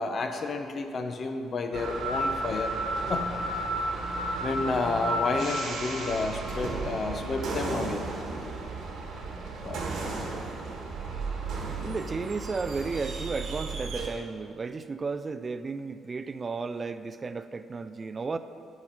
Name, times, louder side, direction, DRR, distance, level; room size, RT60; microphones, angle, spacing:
voice 1, 0.0-2.8 3.1-3.3 4.4-8.0 9.2-9.8, left 3 dB, 50° left, 6 dB, 0.7 m, -31 dB
sound 1, 1.7-14.1, right 2 dB, 80° right, 1.3 m, -33 dB
voice 2, 11.7-18.4, right 4 dB, 35° right, 10 dB, 0.3 m, -34 dB
8.4 x 5.0 x 5.2 m, 2.4 s
cardioid pair, 90°, 0 cm